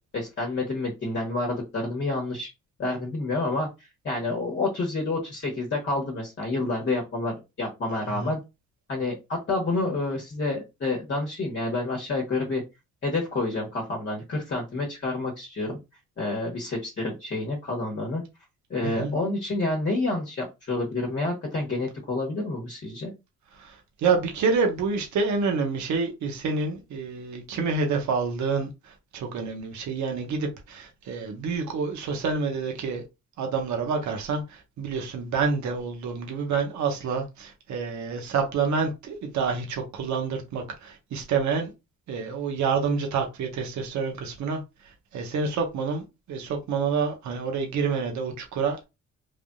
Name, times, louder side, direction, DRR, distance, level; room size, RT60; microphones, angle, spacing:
voice 1, 0.1-2.5 2.8-8.4 8.9-12.6 13.0-15.8 16.2-18.2 18.7-23.1, left 2 dB, 40° left, 1.1 m, -29 dB
voice 2, 23.6-28.7 29.1-33.0 33.4-41.7 42.1-44.6 45.1-46.0 46.3-48.8, right 5 dB, 70° right, 0.9 m, -28 dB
3.4 x 2.5 x 2.3 m
cardioid pair, 90°, 30 cm